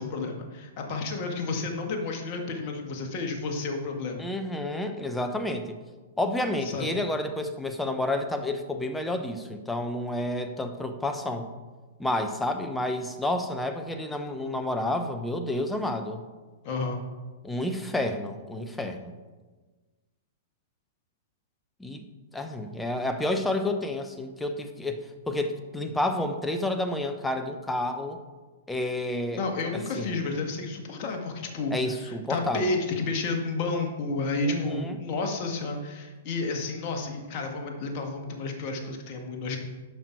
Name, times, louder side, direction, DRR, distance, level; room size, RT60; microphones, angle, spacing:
voice 1, 0.0-4.3 6.6-6.9 16.6-17.0 29.3-39.6, left 3 dB, 45° left, 2 dB, 1.8 m, -31 dB
voice 2, 4.2-5.8 6.2-11.5 12.0-16.2 17.4-19.1 21.8-22.0 22.3-28.2 28.7-29.4 30.0-30.2 31.7-32.8 34.4-35.0, left 1 dB, 5° left, 7 dB, 1.0 m, -30 dB
11.0 x 5.9 x 4.7 m, 1.3 s
figure-of-eight pair, 110°, 0 cm